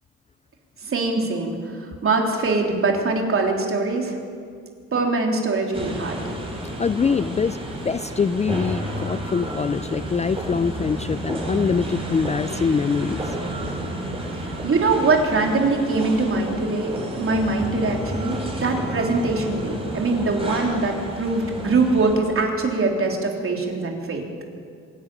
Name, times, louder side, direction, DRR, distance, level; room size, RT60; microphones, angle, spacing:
voice 1, 0.8-4.2 4.9-6.1 14.3-24.2, right 3 dB, 45° right, 1 dB, 3.7 m, -23 dB
sound 1, 5.7-22.2, right 1 dB, 20° right, 5.2 m, -31 dB
voice 2, 6.8-7.6 7.8-13.4, left 5 dB, 25° left, 14 dB, 0.4 m, -24 dB
25.5 x 11.0 x 9.3 m, 2.1 s
cardioid pair, 90°, 30 cm